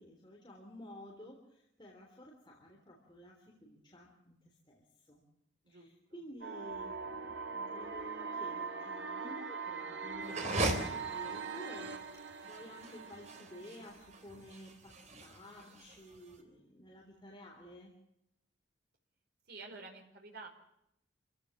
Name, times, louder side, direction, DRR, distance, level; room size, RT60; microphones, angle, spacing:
voice 1, 0.0-5.2 5.7-17.9, equal, 25° left, -1 dB, 3.6 m, -53 dB
sound 1, 6.4-14.4, right 5 dB, 80° right, 2.5 m, -42 dB
sound 2, 10.2-16.3, right 2 dB, 40° right, 3.6 m, -39 dB
voice 2, 19.5-20.5, right 3 dB, 60° right, 2 dB, 4.5 m, -49 dB
27.0 x 16.5 x 7.4 m, 0.82 s
head